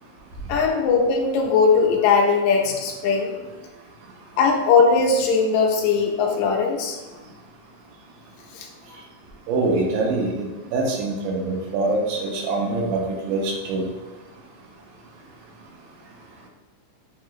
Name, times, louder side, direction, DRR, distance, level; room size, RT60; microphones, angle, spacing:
voice 1, 0.5-3.3 4.4-7.0 8.5-8.7, left 5 dB, 80° left, 0 dB, 1.6 m, -19 dB
voice 2, 9.5-13.0 13.2-13.8, right 3 dB, 80° right, -1 dB, 2.4 m, -24 dB
7.5 x 2.9 x 2.4 m, 1.2 s
omnidirectional pair, 3.8 m